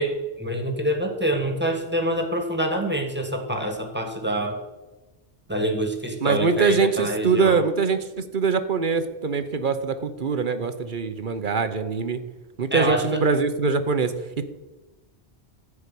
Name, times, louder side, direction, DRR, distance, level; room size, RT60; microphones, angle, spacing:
voice 1, 0.0-4.6 5.5-7.6 12.7-13.2, right 1 dB, 10° right, 3 dB, 1.6 m, -26 dB
voice 2, 6.2-12.2 12.6-14.4, right 5 dB, 50° right, 10 dB, 1.0 m, -23 dB
14.5 x 4.9 x 8.3 m, 1.1 s
omnidirectional pair, 1.1 m